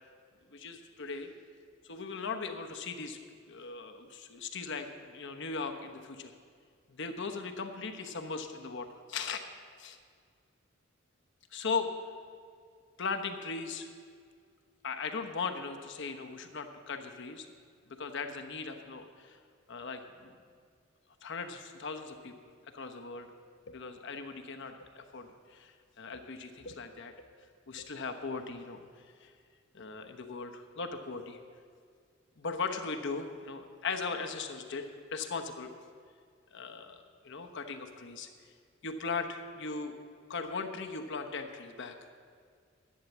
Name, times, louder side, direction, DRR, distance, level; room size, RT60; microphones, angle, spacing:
voice 1, 0.5-1.3 1.8-3.2 3.5-6.3 6.9-9.4 9.8-10.0 11.5-11.9 13.0-13.9 14.8-17.5 18.0-19.4 19.7-20.3 21.2-22.3 22.7-23.3 23.7-27.1 27.7-28.8 29.2-29.3 29.7-31.4 32.4-35.7 36.5-38.3 38.8-40.0 40.3-42.0, left 4 dB, 65° left, 6 dB, 1.0 m, -38 dB
11.0 x 8.9 x 7.2 m, 2.1 s
head